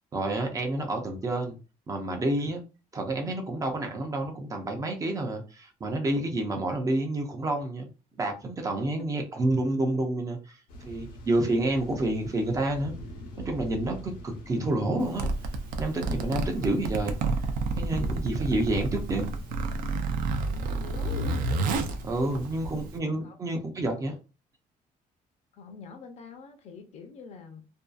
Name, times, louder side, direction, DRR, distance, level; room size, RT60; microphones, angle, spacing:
voice 1, 0.1-1.6 1.9-2.6 2.9-7.9 8.2-12.9 13.5-15.3 15.8-17.2 17.8-19.3 22.0-24.2, right 2 dB, 25° right, 0.4 m, -29 dB
sound 1, 10.7-22.7, right 1 dB, 85° left, 0.7 m, -45 dB
Zipper (clothing), 15.0-23.0, right 3 dB, 80° right, 0.4 m, -30 dB
voice 2, 20.4-21.4 22.5-22.9 23.2-23.4 25.5-27.6, left 4 dB, 50° left, 0.5 m, -45 dB
2.6 x 2.3 x 2.3 m
cardioid pair, 165°, 14 cm